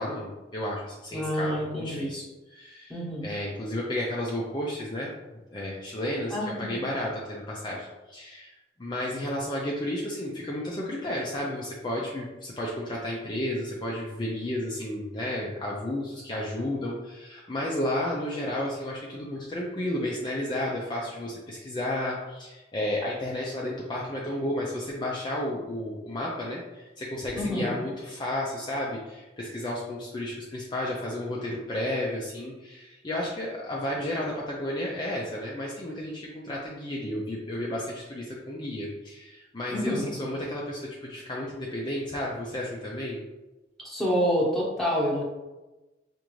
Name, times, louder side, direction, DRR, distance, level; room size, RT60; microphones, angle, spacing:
voice 1, 0.0-2.2 2.5-3.0 3.2-5.1 5.5-8.5 8.8-43.2, left 1 dB, 25° left, -4 dB, 0.5 m, -32 dB
voice 2, 1.1-2.1 2.9-3.3 6.3-6.7 27.3-27.7 39.7-40.1 43.8-45.2, equal, ahead, -6 dB, 1.0 m, -27 dB
4.9 x 2.5 x 3.0 m, 1.1 s
head